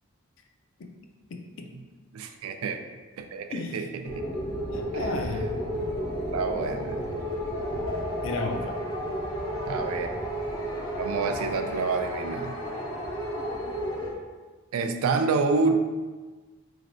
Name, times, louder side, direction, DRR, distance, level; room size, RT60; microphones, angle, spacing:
voice 1, 1.3-1.7 3.5-3.8 4.7-5.5 8.2-8.8, left 2 dB, 60° left, 4 dB, 0.4 m, -33 dB
voice 2, 2.1-2.8 3.2-4.3 4.9-5.2 6.3-7.0 9.7-10.1 11.0-12.6 14.7-15.8, right 4 dB, 85° right, 6 dB, 0.4 m, -28 dB
sound 1, 4.0-14.1, equal, 85° left, 0.9 m, -32 dB
4.1 x 3.2 x 2.6 m, 1.3 s
head